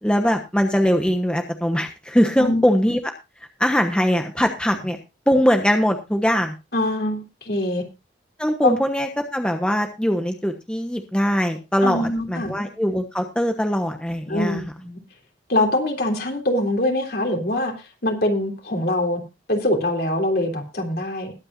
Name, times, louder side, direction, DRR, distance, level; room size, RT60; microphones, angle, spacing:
voice 1, 0.0-3.0 3.6-5.0 5.3-6.5 8.4-14.6, equal, 5° left, 4 dB, 1.1 m, -21 dB
voice 2, 2.4-2.7 6.7-7.8 8.6-8.7 11.8-12.5 14.3-15.0 15.5-19.2 19.5-21.3, left 1 dB, 55° left, 3 dB, 3.3 m, -23 dB
21.0 x 8.7 x 2.6 m, 0.27 s
head